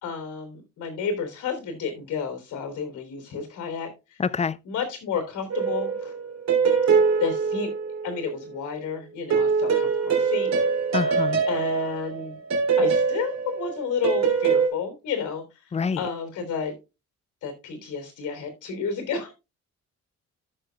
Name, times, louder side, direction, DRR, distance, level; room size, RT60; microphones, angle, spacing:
voice 1, 0.0-3.9 4.6-6.1 7.2-7.7 8.0-10.5 11.5-12.4 12.8-15.4 16.0-16.7 17.4-19.3, left 6 dB, 80° left, 3.6 m, -31 dB
voice 2, 4.2-4.6 10.9-11.4 15.7-16.0, left 5 dB, 20° left, 0.5 m, -26 dB
sound 1, 5.5-8.4 9.3-14.7, right 5 dB, 60° right, 3.3 m, -23 dB
14.0 x 6.4 x 2.3 m
cardioid pair, 90°, 30 cm